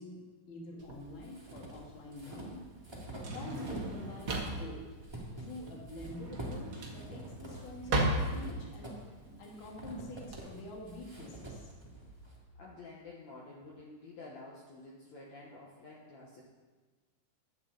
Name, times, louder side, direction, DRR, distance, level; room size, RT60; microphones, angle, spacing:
voice 1, 0.0-2.6 3.3-4.8 5.4-9.0 9.4-11.7, left 2 dB, 40° left, -1 dB, 2.5 m, -47 dB
Drawer open or close, 0.8-10.4, right 1 dB, 75° right, 0.8 m, -37 dB
sound 1, 0.9-3.9 4.2-12.4, right 1 dB, 10° right, 2.1 m, -47 dB
voice 2, 12.6-16.4, left 3 dB, 60° left, -4 dB, 2.5 m, -50 dB
15.5 x 10.0 x 4.2 m, 1.3 s
omnidirectional pair, 4.1 m